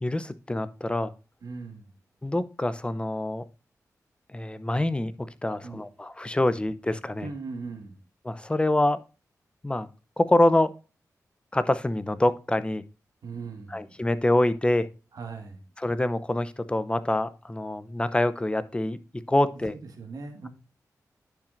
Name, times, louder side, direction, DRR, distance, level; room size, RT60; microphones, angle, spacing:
voice 1, 0.0-1.1 2.2-3.4 4.3-7.3 8.2-9.0 9.6-9.9 10.2-10.7 11.5-12.8 13.7-14.9 15.8-19.7, left 1 dB, 15° left, 14 dB, 0.7 m, -25 dB
voice 2, 1.4-1.9 5.6-5.9 7.2-8.0 13.2-14.0 15.1-15.6 19.7-20.5, right 4 dB, 80° right, 4 dB, 1.8 m, -39 dB
10.0 x 5.8 x 2.6 m, 0.32 s
cardioid pair, 70°, 6 cm